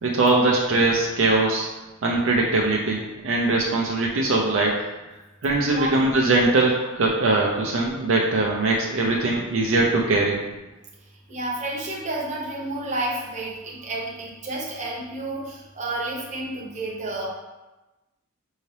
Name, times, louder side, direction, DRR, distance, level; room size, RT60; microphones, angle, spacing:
voice 1, 0.0-1.7 2.0-4.9 5.4-10.4, right 2 dB, 65° right, -2 dB, 0.5 m, -21 dB
voice 2, 11.3-17.3, right 2 dB, 35° right, -3 dB, 0.8 m, -30 dB
5.5 x 2.7 x 3.2 m, 1.1 s
head